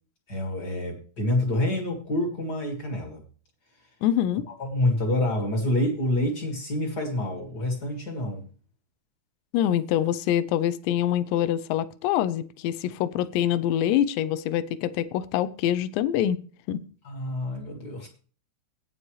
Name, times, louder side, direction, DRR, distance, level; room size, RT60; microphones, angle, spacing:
voice 1, 0.3-3.2 4.6-8.5 17.0-18.1, left 1 dB, 50° left, 1.2 m, -27 dB
voice 2, 4.0-4.5 9.5-16.4 16.7-16.8, left 11 dB, 85° left, 2.8 m, -25 dB
15.0 x 9.1 x 3.2 m
omnidirectional pair, 5.0 m